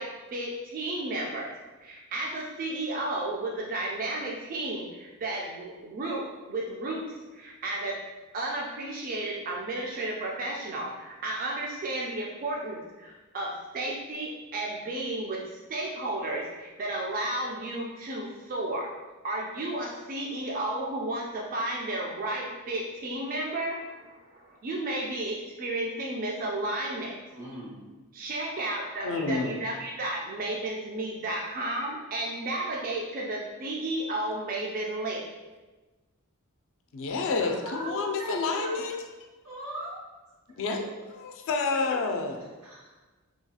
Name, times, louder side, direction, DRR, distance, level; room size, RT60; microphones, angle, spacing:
voice 1, 0.0-1.5 1.8-7.0 7.3-8.0 8.3-15.4 15.7-18.9 19.2-27.2 28.1-35.3, right 2 dB, 40° right, -2 dB, 0.3 m, -33 dB
voice 2, 27.3-27.9 37.4-38.8 39.4-40.0 41.9-42.0 42.6-42.9, right 1 dB, 90° right, -7 dB, 1.4 m, -39 dB
voice 3, 29.0-29.6 36.9-39.0 40.5-42.4, left 3 dB, 60° left, 4 dB, 0.3 m, -29 dB
2.8 x 2.3 x 2.7 m, 1.2 s
head